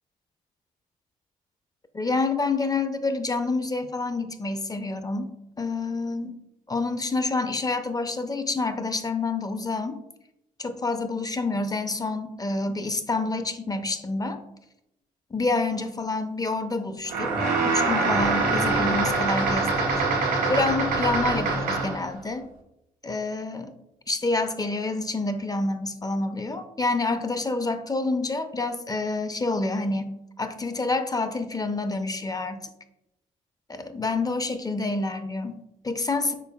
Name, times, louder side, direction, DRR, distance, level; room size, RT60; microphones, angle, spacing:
voice 1, 1.9-5.3 5.6-6.4 6.7-10.0 10.6-14.4 15.3-19.9 20.5-22.5 23.0-23.8 24.1-32.7 33.7-36.3, left 3 dB, 20° left, 9 dB, 0.5 m, -28 dB
sound 1, 17.1-22.1, right 3 dB, 75° right, 1.1 m, -24 dB
5.1 x 4.0 x 2.3 m, 0.87 s
hypercardioid pair, 45°, 18 cm